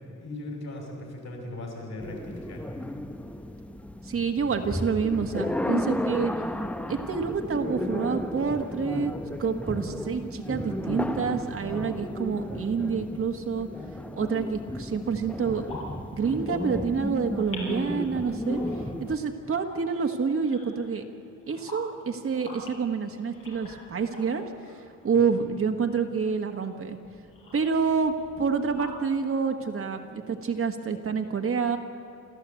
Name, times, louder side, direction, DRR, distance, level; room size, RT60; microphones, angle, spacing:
voice 1, 0.2-2.6 25.1-25.4, left 2 dB, 55° left, 1 dB, 6.0 m, -38 dB
sound 1, 2.0-19.2, left 1 dB, 5° left, 0.6 m, -33 dB
voice 2, 4.0-6.3 6.9-9.1 9.4-13.7 14.1-15.7 16.1-18.6 19.0-21.0 21.5-24.4 25.0-27.0 27.5-31.8, right 5 dB, 40° right, 4 dB, 1.5 m, -28 dB
sound 2, 15.7-17.0 17.3-17.9 18.2-21.1 21.4-26.2 26.9-29.0, left 2 dB, 80° left, 6.6 m, -45 dB
28.5 x 14.0 x 8.3 m, 2.8 s
wide cardioid pair, 170°, 33 cm